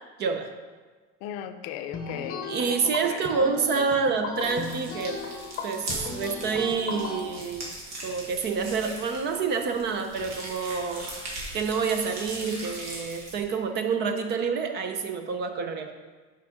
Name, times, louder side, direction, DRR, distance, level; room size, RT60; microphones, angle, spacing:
voice 1, 0.2-0.5 2.4-5.2 5.6-7.7 8.0-11.1 11.5-15.9, right 5 dB, 35° right, 6 dB, 0.6 m, -28 dB
voice 2, 1.2-3.4, left 10 dB, 65° left, 9 dB, 0.5 m, -37 dB
sound 1, 1.9-7.2, left 3 dB, 30° left, 0.9 m, -36 dB
sound 2, 4.4-13.4, right 1 dB, 65° right, 2.3 m, -40 dB
6.0 x 5.7 x 5.1 m, 1.4 s
cardioid pair, 170°, 29 cm